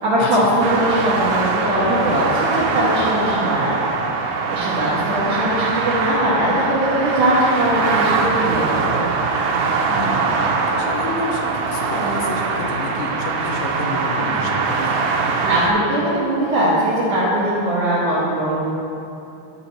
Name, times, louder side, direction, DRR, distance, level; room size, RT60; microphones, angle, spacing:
voice 1, 0.0-4.0 4.5-9.1 15.4-18.7, right 1 dB, 70° right, -10 dB, 2.0 m, -20 dB
Highway Regular traffic (medium distance), 0.6-15.7, right 4 dB, 85° right, 2.8 m, -22 dB
voice 2, 9.9-15.0, left 2 dB, 85° left, 0 dB, 3.1 m, -29 dB
13.0 x 5.9 x 2.8 m, 2.8 s
omnidirectional pair, 5.3 m